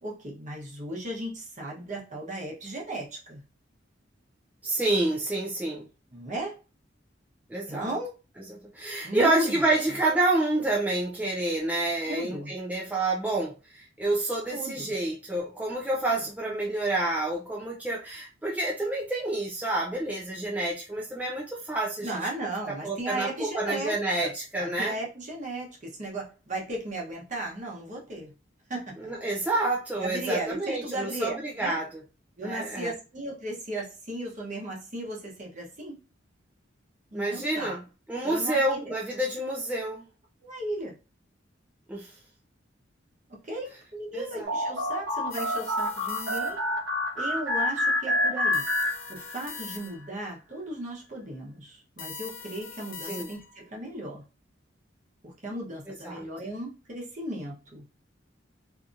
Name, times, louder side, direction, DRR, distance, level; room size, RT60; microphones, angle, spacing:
voice 1, 0.0-3.4 6.1-6.6 7.7-8.1 9.0-9.6 12.1-12.5 14.5-14.9 16.1-16.2 22.0-24.3 24.6-28.3 28.7-29.1 30.0-31.8 32.4-36.0 37.1-37.7 38.2-39.0 40.4-40.9 43.3-46.6 47.2-48.6 49.1-54.2 55.2-57.8, right 1 dB, 40° right, 0.9 m, -35 dB
voice 2, 4.6-5.9 7.5-7.9 8.5-22.2 22.8-25.0 29.0-32.0 32.4-32.9 37.1-37.8 38.1-40.0 41.9-42.1 44.1-44.5 53.0-53.3 55.9-56.2, right 2 dB, 10° right, 0.4 m, -28 dB
sound 1, 44.5-49.6, left 1 dB, 85° right, 1.1 m, -28 dB
sound 2, 45.3-46.8 48.5-50.2 52.0-53.7, left 5 dB, 85° left, 0.4 m, -42 dB
2.7 x 2.5 x 2.4 m
head